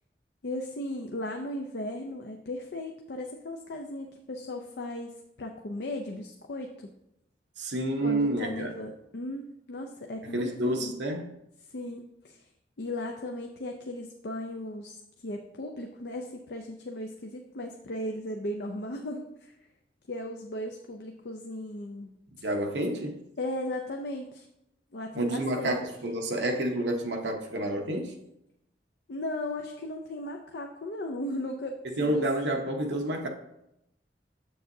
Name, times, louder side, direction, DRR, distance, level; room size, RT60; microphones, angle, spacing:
voice 1, 0.4-6.9 8.0-10.9 11.7-12.5 12.8-19.5 20.1-22.2 23.4-24.5 24.9-25.8 29.1-32.3, left 1 dB, 70° left, 0.5 m, -36 dB
voice 2, 7.6-8.8 10.2-11.4 22.4-23.2 25.1-28.1 31.8-33.3, right 1 dB, 80° right, 0.9 m, -29 dB
7.6 x 6.6 x 2.7 m
head